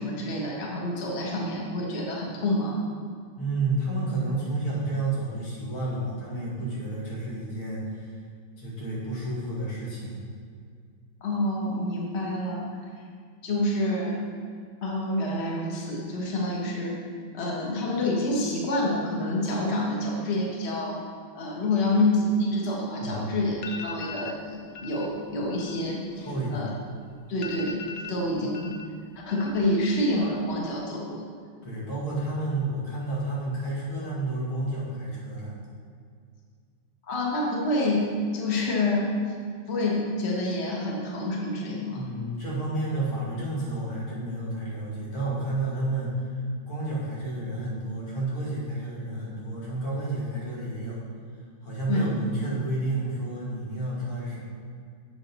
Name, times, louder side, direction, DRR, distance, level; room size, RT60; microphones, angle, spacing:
voice 1, 0.0-2.8 11.2-12.7 13.4-14.3 14.8-17.0 17.3-21.0 21.3-26.3 26.5-26.7 27.3-27.8 28.1-28.7 29.3-31.3 37.1-38.1 38.3-39.1 39.7-42.0 51.9-52.1, left 1 dB, 35° left, -3 dB, 1.5 m, -27 dB
voice 2, 3.4-8.2 8.6-10.2 23.0-23.4 26.2-26.7 28.4-28.5 31.6-35.5 41.9-51.0 51.6-54.4, right 2 dB, 80° left, -6 dB, 3.2 m, -31 dB
sound 1, 23.1-23.2 23.5-24.4 24.7-25.1 25.4-26.8 27.1-27.2 27.4-28.9 29.2-29.8 30.0-30.6, left 5 dB, 65° left, 0.9 m, -40 dB
7.8 x 7.0 x 5.5 m, 2.2 s
omnidirectional pair, 2.2 m